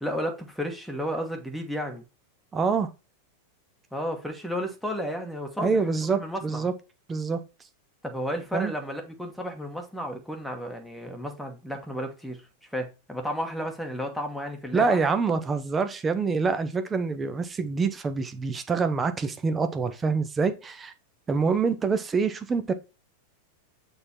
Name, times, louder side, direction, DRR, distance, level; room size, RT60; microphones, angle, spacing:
voice 1, 0.0-2.0 3.9-6.7 8.0-12.4 12.7-15.1, equal, ahead, 1.3 m, -33 dB
voice 2, 2.5-2.9 5.6-6.7 7.1-7.4 8.5-8.7 14.7-20.9 21.3-22.7, right 4 dB, 20° right, 0.8 m, -26 dB
6.7 x 3.6 x 4.3 m
figure-of-eight pair, 90°, 0 cm